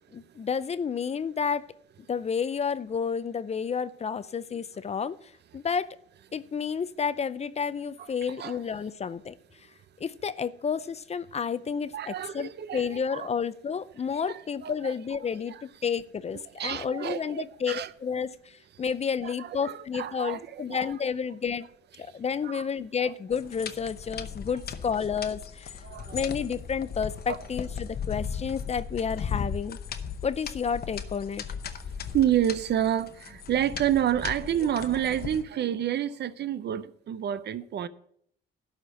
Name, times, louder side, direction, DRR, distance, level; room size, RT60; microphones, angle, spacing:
voice 1, 0.1-1.7 2.1-5.2 5.5-6.0 6.3-9.3 10.0-21.7 22.0-25.7 26.1-29.8 30.2-31.4, left 6 dB, 35° left, 0.5 m, -31 dB
voice 2, 8.0-8.6 11.9-13.3 14.3-15.0 15.5-15.6 16.3-17.9 18.2-18.3 19.2-20.9 22.0-22.7 23.0-23.1 25.8-26.2 27.3-27.4 32.1-37.9, right 10 dB, 60° right, 0.6 m, -29 dB
sound 1, 23.3-35.4, left 7 dB, 50° left, 0.9 m, -37 dB
12.0 x 4.3 x 8.0 m
cardioid pair, 90°, 20 cm